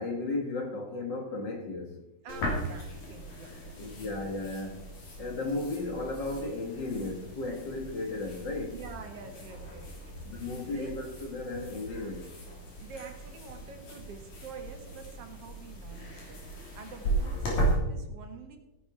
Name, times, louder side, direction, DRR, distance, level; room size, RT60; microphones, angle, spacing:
voice 1, 0.0-2.0 3.7-4.9 5.2-8.8 10.2-12.3, left 2 dB, 45° left, 3 dB, 1.8 m, -35 dB
voice 2, 2.2-4.0 8.7-10.2 10.7-11.1 12.8-16.4 16.7-18.6, right 5 dB, 60° right, 5 dB, 2.4 m, -46 dB
sound 1, 2.3-17.7, right 1 dB, 85° left, 4.9 m, -37 dB
16.0 x 10.0 x 4.8 m, 0.96 s
omnidirectional pair, 3.3 m